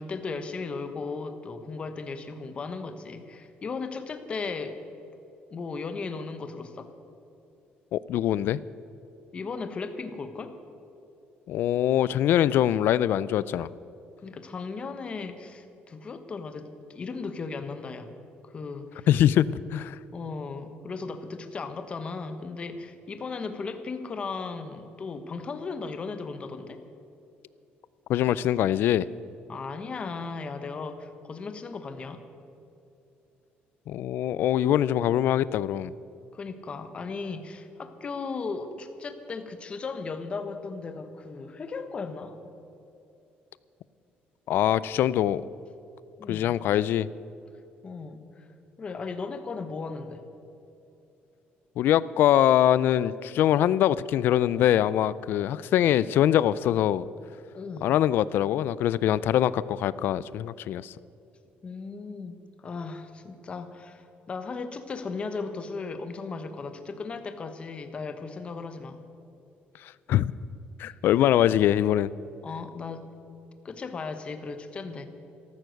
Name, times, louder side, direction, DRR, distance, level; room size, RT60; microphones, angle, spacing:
voice 1, 0.0-4.8 5.5-6.9 9.3-10.6 14.2-18.1 18.4-19.1 20.1-26.8 29.5-32.2 36.3-42.4 46.2-46.5 47.8-48.5 48.8-50.3 57.5-58.0 61.6-69.0 70.8-70.9 72.4-73.1 73.6-75.1, left 4 dB, 30° left, 9 dB, 1.1 m, -36 dB
voice 2, 7.9-8.6 11.5-13.7 19.1-20.0 28.1-29.1 33.9-35.9 44.5-45.4 46.3-47.1 51.8-57.1 57.8-60.9 69.8-70.3 70.8-72.1, left 11 dB, 65° left, 18 dB, 0.4 m, -23 dB
14.0 x 13.0 x 6.5 m, 2.8 s
cardioid pair, 160°, 4 cm